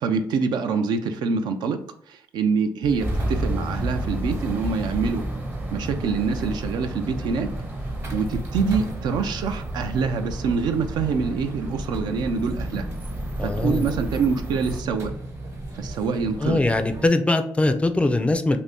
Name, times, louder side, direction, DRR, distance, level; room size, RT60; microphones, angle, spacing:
voice 1, 0.0-5.3 5.7-7.5 8.1-12.9 13.4-15.1 15.7-16.6, right 5 dB, 70° right, 7 dB, 0.4 m, -25 dB
sound 1, 2.8-17.1, right 2 dB, 45° right, 1.1 m, -35 dB
sound 2, 3.0-14.8, right 1 dB, 25° right, 0.6 m, -32 dB
voice 2, 13.4-13.9 16.4-18.6, left 2 dB, 15° left, 8 dB, 0.4 m, -21 dB
2.6 x 2.5 x 3.4 m, 0.65 s
supercardioid pair, 70°, 8 cm